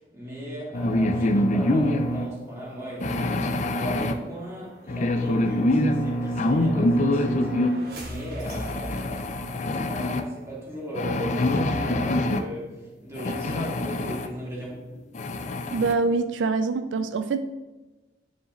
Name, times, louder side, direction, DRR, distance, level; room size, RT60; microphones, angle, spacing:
voice 1, 0.0-14.9, equal, 15° right, -5 dB, 2.2 m, -37 dB
sound 1, 0.7-2.3 3.0-4.2 4.9-7.7 8.4-10.2 11.0-12.4 13.1-14.3 14.7-14.8 15.1-16.0, left 1 dB, 40° left, 0.4 m, -25 dB
sound 2, 3.2-9.8, equal, 60° right, 1.4 m, -42 dB
voice 2, 15.7-17.4, right 4 dB, 80° right, 10 dB, 0.4 m, -24 dB
9.6 x 4.8 x 3.1 m, 1.2 s
head